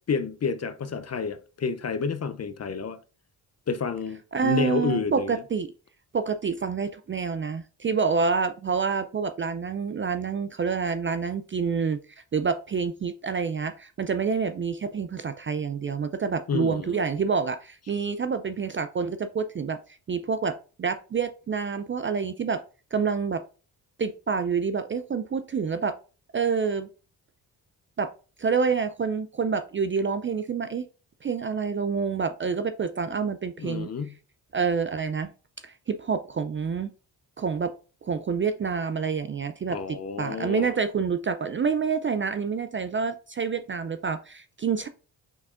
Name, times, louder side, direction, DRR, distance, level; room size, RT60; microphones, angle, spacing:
voice 1, 0.1-3.0 3.7-5.4 16.5-17.0 33.6-34.2 39.7-40.7, left 5 dB, 35° left, 0.6 m, -30 dB
voice 2, 4.3-5.7 6.1-22.6 22.9-23.4 24.0-25.9 26.3-26.9 28.0-28.1 28.4-30.8 31.2-33.9 34.5-35.3 35.6-36.9 37.4-37.7 38.0-44.9, right 5 dB, 30° right, 0.4 m, -27 dB
6.2 x 3.3 x 2.4 m
supercardioid pair, 45°, 44 cm